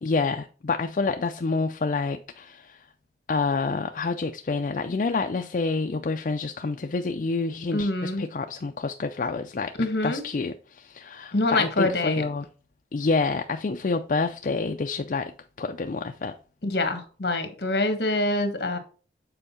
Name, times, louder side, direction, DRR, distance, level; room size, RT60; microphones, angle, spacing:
voice 1, 0.0-2.9 3.3-9.7 10.0-12.5 12.9-15.3 15.6-16.3, left 4 dB, 45° left, 0.4 m, -28 dB
voice 2, 7.7-8.2 9.8-10.2 11.3-12.2 16.6-18.8, left 2 dB, 65° left, 1.3 m, -25 dB
7.8 x 4.5 x 4.2 m
head